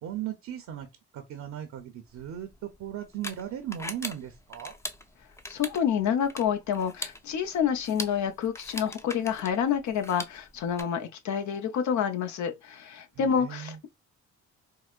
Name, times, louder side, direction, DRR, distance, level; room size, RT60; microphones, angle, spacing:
voice 1, 0.0-0.9 1.1-4.7 13.1-13.8, right 11 dB, 65° right, 0.7 m, -37 dB
sound 1, 2.1-10.8, left 1 dB, 10° left, 0.5 m, -41 dB
voice 2, 5.5-13.9, left 8 dB, 70° left, 0.7 m, -28 dB
4.7 x 2.1 x 2.4 m
cardioid pair, 90°, 30 cm